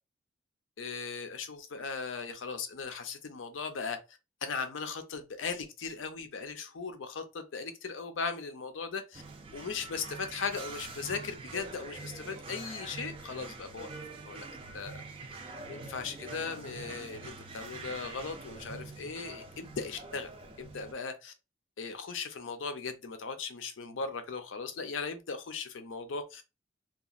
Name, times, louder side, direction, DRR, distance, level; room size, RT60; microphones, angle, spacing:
voice 1, 0.8-9.2 9.5-13.9 14.3-14.5 14.7-15.0 15.7-20.3 20.6-21.3 21.8-26.4, left 5 dB, 80° left, 0.5 m, -38 dB
sound 1, 9.1-20.9, right 3 dB, 30° right, 0.4 m, -45 dB
2.8 x 2.4 x 2.4 m
head